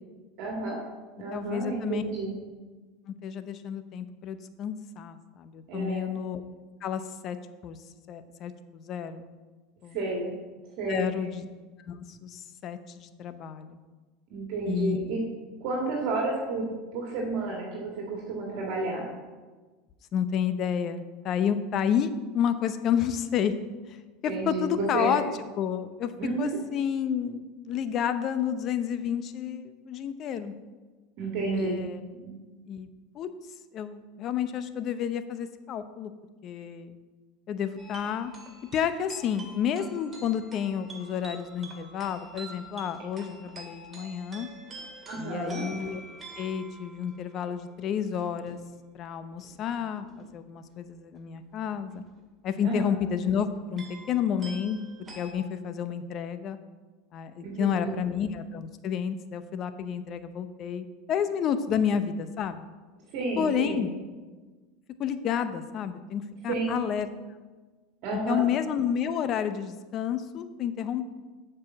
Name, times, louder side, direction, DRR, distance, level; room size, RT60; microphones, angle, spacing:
voice 1, 0.4-0.8 1.2-2.3 5.7-6.1 9.9-10.3 10.8-11.1 14.3-15.2 15.6-19.1 24.2-25.2 26.2-26.6 31.2-31.8 32.2-32.4 45.1-45.6 52.6-53.0 57.4-58.0 63.1-63.9 66.5-66.8 68.0-68.4, right 3 dB, 60° right, -1 dB, 1.7 m, -31 dB
voice 2, 1.3-2.0 3.2-6.4 6.8-7.4 7.6-7.8 8.1-9.2 9.8-10.0 10.9-11.5 11.8-13.8 14.6-15.0 20.1-23.5 23.9-24.0 24.2-25.2 25.6-26.1 26.4-30.5 31.5-32.0 32.7-32.9 33.1-33.3 33.7-36.1 36.4-36.9 37.5-38.3 38.7-44.5 45.2-46.0 46.4-48.6 48.9-52.0 52.4-54.8 55.2-56.6 57.1-62.6 63.4-63.9 65.0-67.1 68.3-71.0, left 8 dB, 45° left, 11 dB, 0.7 m, -30 dB
sound 1, 37.8-47.5 48.0-48.6 49.4-49.6 50.0-50.3 51.7-52.2 53.3-53.4 53.6-55.3, right 2 dB, 20° right, 1.9 m, -47 dB
7.3 x 4.9 x 7.2 m, 1.3 s
hypercardioid pair, 100°, 0 cm